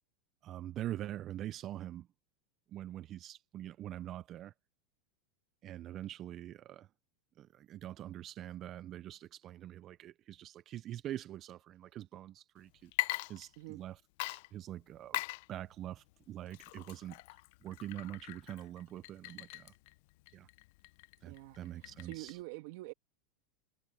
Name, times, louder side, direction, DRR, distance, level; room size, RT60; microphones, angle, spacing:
voice 1, 0.4-2.1 2.7-4.5 5.6-6.9 7.4-15.2 15.5-17.2 17.6-19.7 20.3-20.5 21.2-22.4, right 12 dB, 40° right, 0.5 m, -44 dB
Water / Liquid, 12.8-13.9 14.2-22.4, left 22 dB, 65° left, 0.5 m, -42 dB
voice 2, 21.3-21.6 22.1-22.9, right 21 dB, 65° right, 2.0 m, -45 dB
supercardioid pair, 125°, 0 cm